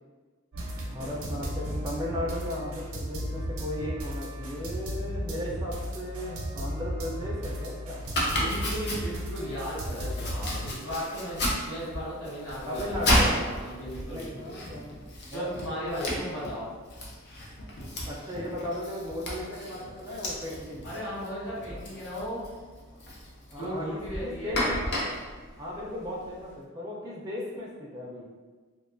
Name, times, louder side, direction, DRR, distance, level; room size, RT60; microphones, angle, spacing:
sound 1, 0.5-10.7, equal, 80° right, 0.5 m, -35 dB
voice 1, 0.9-8.0 12.7-13.6 14.1-16.4 18.0-20.9 21.7-21.8 23.5-25.3 25.6-28.3, left 1 dB, 15° right, -4 dB, 0.3 m, -36 dB
Domestic sounds home sounds, 8.0-26.5, left 1 dB, 55° left, 0.5 m, -33 dB
voice 2, 8.3-14.6 15.3-16.8 20.8-22.4 23.6-24.6, equal, 85° left, -9 dB, 1.1 m, -36 dB
2.4 x 2.2 x 2.5 m, 1.4 s
head